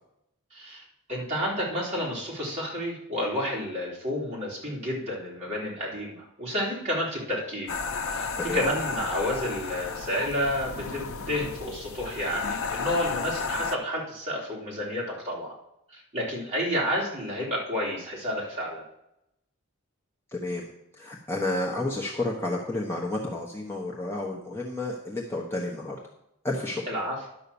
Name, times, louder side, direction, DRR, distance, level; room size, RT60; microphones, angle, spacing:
voice 1, 0.5-0.8 1.1-7.7 8.1-15.5 15.9-18.8 26.9-27.3, equal, 30° right, -5 dB, 3.5 m, -30 dB
sound 1, 7.7-13.8, left 4 dB, 80° left, 0.6 m, -33 dB
voice 2, 20.3-20.7 21.0-25.9 26.4-26.8, left 2 dB, 10° left, -3 dB, 1.0 m, -31 dB
11.0 x 5.5 x 7.0 m, 0.83 s
head